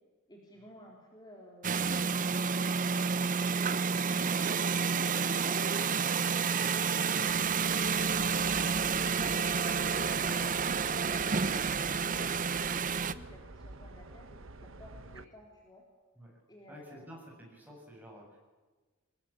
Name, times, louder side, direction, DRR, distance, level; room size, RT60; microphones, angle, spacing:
voice 1, 0.3-2.2 6.5-7.3 8.7-15.9 16.5-17.1, left 1 dB, 20° left, -1 dB, 3.8 m, -54 dB
sound 1, 1.6-13.1, right 5 dB, 40° right, 0.8 m, -30 dB
sound 2, 7.2-15.2, right 2 dB, 70° right, 1.2 m, -48 dB
voice 2, 16.7-18.4, equal, 10° right, -1 dB, 7.9 m, -53 dB
23.5 x 20.5 x 8.9 m, 1.3 s
head